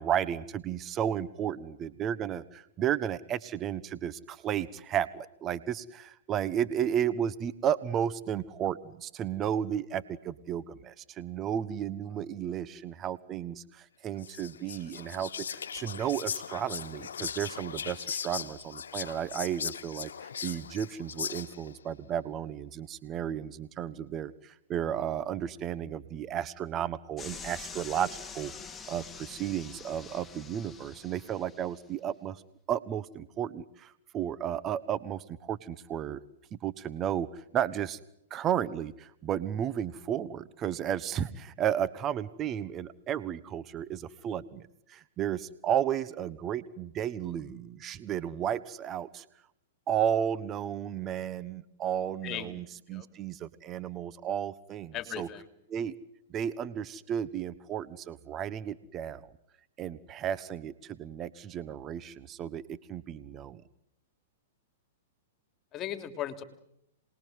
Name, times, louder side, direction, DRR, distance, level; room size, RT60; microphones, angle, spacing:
voice 1, 0.0-32.4 32.7-36.2 36.5-38.0 38.3-49.2 49.9-55.3 55.7-56.0 56.3-59.3 59.8-63.6, right 9 dB, 25° right, 17 dB, 1.2 m, -33 dB
Whispering, 14.2-21.8, left 7 dB, 90° left, 1.2 m, -39 dB
sound 1, 27.2-31.8, left 5 dB, 15° left, 3.0 m, -45 dB
voice 2, 52.2-52.6 52.9-53.1 54.9-55.5 65.7-66.4, left 11 dB, 30° left, 9 dB, 3.2 m, -37 dB
27.0 x 21.0 x 9.4 m, 0.80 s
hypercardioid pair, 135°, 0 cm